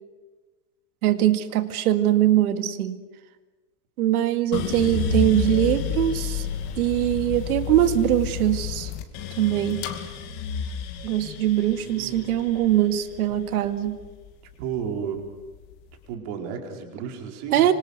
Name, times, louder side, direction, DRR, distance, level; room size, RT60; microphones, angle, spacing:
voice 1, 1.0-3.0 4.0-6.5 6.8-8.9 9.4-9.8 11.0-14.0 17.5-17.7, right 12 dB, 60° right, 9 dB, 2.1 m, -22 dB
sound 1, 4.5-14.7 15.2-15.9, left 7 dB, 35° left, 2.6 m, -31 dB
voice 2, 11.6-12.3 13.3-13.4 14.6-15.2 16.1-17.7, right 7 dB, 40° right, 2 dB, 4.7 m, -33 dB
26.5 x 25.5 x 6.7 m, 1.2 s
supercardioid pair, 160°, 49 cm